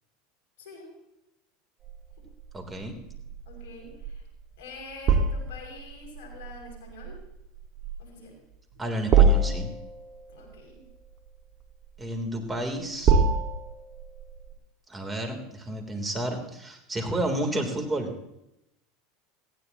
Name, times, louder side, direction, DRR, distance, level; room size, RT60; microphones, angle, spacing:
voice 1, 0.6-0.9 3.4-4.2 4.6-7.2 8.0-8.3 10.3-10.9 17.0-17.3, left 3 dB, 75° left, 0 dB, 6.6 m, -46 dB
sound 1, 1.8-14.5, right 4 dB, 40° right, 1.9 m, -27 dB
voice 2, 2.5-3.0 8.8-9.7 12.0-13.1 14.9-18.1, right 1 dB, 15° right, 3 dB, 3.4 m, -31 dB
19.0 x 15.5 x 3.0 m, 0.85 s
hypercardioid pair, 100°, 0 cm